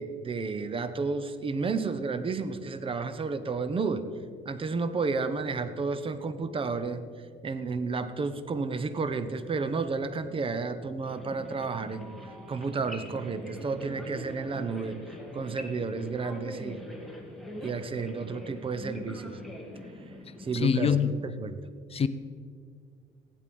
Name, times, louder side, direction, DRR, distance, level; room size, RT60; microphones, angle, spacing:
voice 1, 0.0-4.0 4.4-7.0 7.4-15.0 15.3-16.8 17.6-19.4 20.4-21.6, right 4 dB, 30° right, 11 dB, 0.9 m, -32 dB
sound 1, 11.0-20.6, left 1 dB, ahead, 2.5 m, -43 dB
voice 2, 20.5-21.2 21.9-22.1, left 7 dB, 35° left, 13 dB, 0.6 m, -24 dB
15.5 x 11.5 x 5.4 m, 2.1 s
cardioid pair, 110°, 17 cm